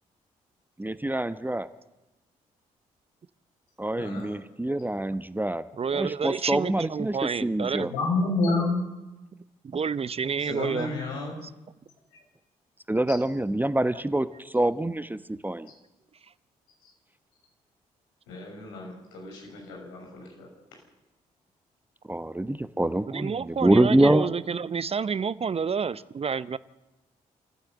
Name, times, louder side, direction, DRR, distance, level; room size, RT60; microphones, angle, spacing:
voice 1, 0.8-1.7 3.8-5.6 5.9-7.9 12.9-15.7 22.1-24.3, right 1 dB, 10° right, 13 dB, 1.1 m, -25 dB
voice 2, 4.0-4.4 7.8-8.8 10.4-11.4 13.1-13.2 18.3-20.5, left 2 dB, 75° left, 0 dB, 6.4 m, -30 dB
voice 3, 5.8-7.9 9.6-10.9 23.1-26.6, right 6 dB, 35° right, 18 dB, 0.7 m, -29 dB
28.0 x 15.0 x 8.0 m, 1.0 s
figure-of-eight pair, 40°, 18 cm